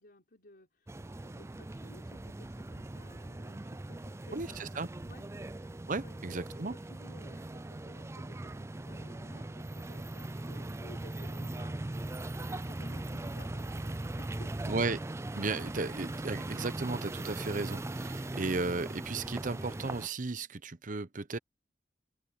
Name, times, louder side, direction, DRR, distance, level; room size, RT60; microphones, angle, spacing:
voice 1, 0.0-5.3 5.9-14.6, left 1 dB, 60° left, 4.1 m, -56 dB
sound 1, 0.9-20.1, right 2 dB, 15° right, 0.4 m, -40 dB
voice 2, 4.3-4.9 5.9-6.8 14.7-15.0 15.3-21.4, right 3 dB, 50° right, 0.9 m, -35 dB
open air
head